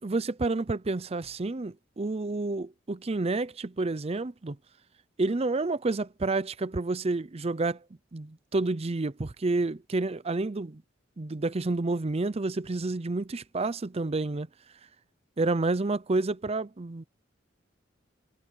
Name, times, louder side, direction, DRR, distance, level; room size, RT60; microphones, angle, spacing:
voice 1, 0.0-4.6 5.2-7.8 8.1-10.8 11.2-14.5 15.4-17.0, right 3 dB, 30° right, 0.6 m, -29 dB
head